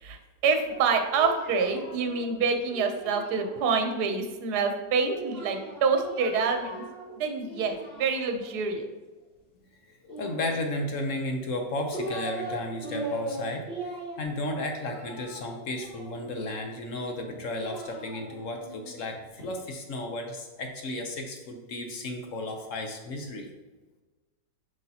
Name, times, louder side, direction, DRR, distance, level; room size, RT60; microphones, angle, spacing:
voice 1, 0.0-6.8 7.1-8.9, right 5 dB, 65° right, 5 dB, 1.3 m, -27 dB
Singing, 0.7-3.9 5.1-7.1 7.4-8.6 10.0-11.0 11.6-12.6 12.8-16.5 17.3-19.5, right 1 dB, 35° left, 2.2 m, -40 dB
voice 2, 9.9-23.5, left 1 dB, 60° left, 3 dB, 0.9 m, -34 dB
7.6 x 5.4 x 2.8 m, 1.2 s
omnidirectional pair, 2.0 m